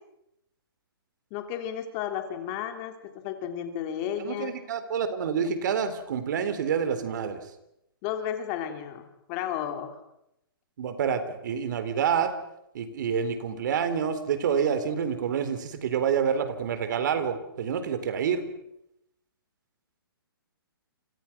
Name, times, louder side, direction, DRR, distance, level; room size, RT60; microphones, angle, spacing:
voice 1, 1.3-4.5 8.0-10.0, left 9 dB, 25° left, 6 dB, 3.4 m, -33 dB
voice 2, 4.2-7.4 10.8-12.3 12.7-18.5, right 7 dB, 50° right, 11 dB, 3.9 m, -28 dB
30.0 x 26.5 x 6.1 m, 0.84 s
hypercardioid pair, 155°, 13 cm